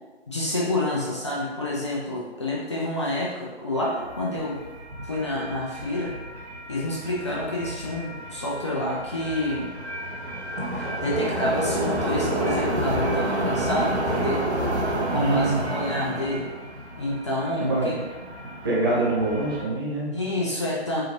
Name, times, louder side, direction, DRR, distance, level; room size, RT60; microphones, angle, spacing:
voice 1, 0.3-4.6 5.0-6.2 6.7-9.7 10.7-14.5 15.1-16.5 17.0-17.9 18.9-19.0 20.1-21.0, left 1 dB, 25° left, -4 dB, 0.5 m, -28 dB
sound 1, 3.8-19.6, right 1 dB, 85° right, 0.9 m, -30 dB
voice 2, 15.1-15.6 17.6-18.0 18.6-20.1, right 2 dB, 20° right, -6 dB, 0.6 m, -24 dB
4.9 x 2.6 x 2.9 m, 1.2 s
figure-of-eight pair, 140°, 32 cm